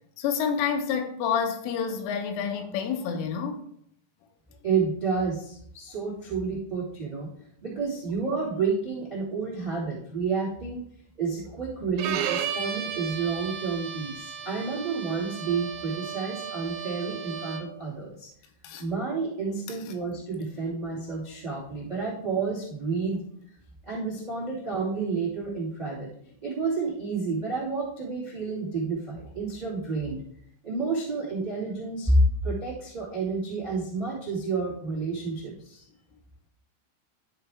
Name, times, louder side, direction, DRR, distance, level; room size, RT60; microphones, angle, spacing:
voice 1, 0.2-3.6 18.6-18.8, left 7 dB, 80° left, 3.3 m, -28 dB
voice 2, 4.6-7.3 7.6-10.8 11.2-18.3 18.8-23.2 23.8-26.1 26.4-30.2 30.6-35.8, right 4 dB, 55° right, 0.4 m, -30 dB
Bowed string instrument, 12.0-17.8, right 8 dB, 90° right, 3.3 m, -34 dB
12.5 x 4.5 x 3.5 m
omnidirectional pair, 5.8 m